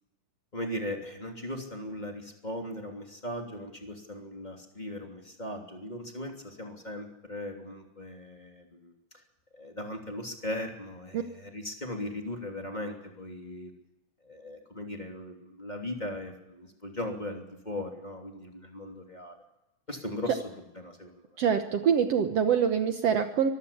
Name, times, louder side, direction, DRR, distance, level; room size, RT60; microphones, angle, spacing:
voice 1, 0.5-8.9 9.5-13.7 14.2-19.4 19.9-21.3, left 1 dB, 15° left, 2 dB, 2.8 m, -38 dB
voice 2, 21.4-23.5, right 7 dB, 65° right, 7 dB, 1.9 m, -25 dB
24.0 x 14.5 x 8.6 m, 0.93 s
omnidirectional pair, 3.5 m